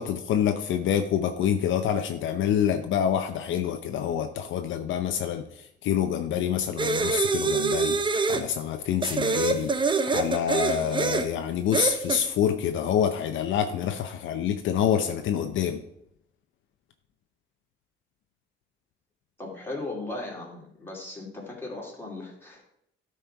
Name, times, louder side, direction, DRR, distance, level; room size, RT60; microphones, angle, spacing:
voice 1, 0.0-8.0 8.3-9.7 10.1-15.8, left 9 dB, 75° left, 7 dB, 0.7 m, -27 dB
sound 1, 6.8-8.5 9.0-11.3 11.7-12.2, right 4 dB, 25° right, 0.7 m, -25 dB
voice 2, 19.4-22.6, left 2 dB, 10° left, -3 dB, 2.7 m, -37 dB
12.5 x 4.4 x 4.6 m, 0.75 s
cardioid pair, 125°, 20 cm